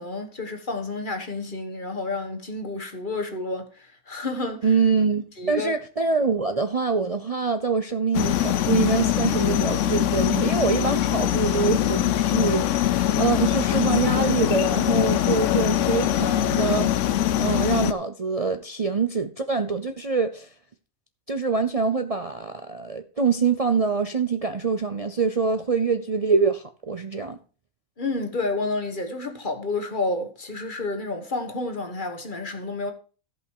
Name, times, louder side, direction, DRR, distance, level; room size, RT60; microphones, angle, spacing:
voice 1, 0.0-4.7 5.4-5.7 28.0-32.9, left 2 dB, 35° left, 1.4 m, -30 dB
voice 2, 4.6-16.9 17.4-20.5 21.3-27.4, right 5 dB, 50° right, 0.4 m, -25 dB
sound 1, 8.1-17.9, left 11 dB, 65° left, 0.9 m, -22 dB
14.5 x 5.5 x 4.7 m
omnidirectional pair, 1.5 m